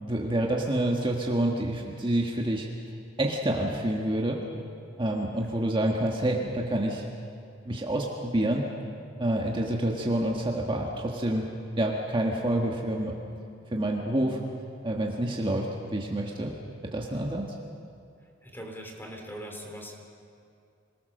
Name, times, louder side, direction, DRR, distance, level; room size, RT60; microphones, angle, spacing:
voice 1, 0.0-2.7 3.2-4.4 5.0-7.0 7.6-8.7 9.2-11.4 11.8-13.2 13.7-14.4 14.8-16.5 16.9-17.5, right 1 dB, 25° right, -1 dB, 1.6 m, -28 dB
voice 2, 18.4-20.0, equal, 10° left, 1 dB, 3.1 m, -41 dB
26.0 x 19.0 x 6.6 m, 2.5 s
head